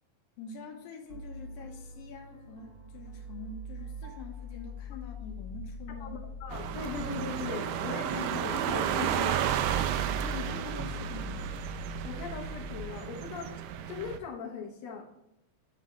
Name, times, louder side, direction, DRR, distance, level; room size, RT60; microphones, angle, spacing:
voice 1, 0.4-6.3 10.2-11.5, left 5 dB, 80° left, 2 dB, 2.5 m, -45 dB
sound 1, 1.1-12.8, left 1 dB, 65° right, 1.1 m, -43 dB
voice 2, 6.0-9.4 12.0-13.5 13.9-15.1, left 5 dB, 60° left, -1 dB, 2.0 m, -39 dB
sound 2, 6.5-14.2, right 9 dB, 80° right, 2.1 m, -32 dB
9.4 x 5.1 x 3.7 m, 0.87 s
omnidirectional pair, 4.1 m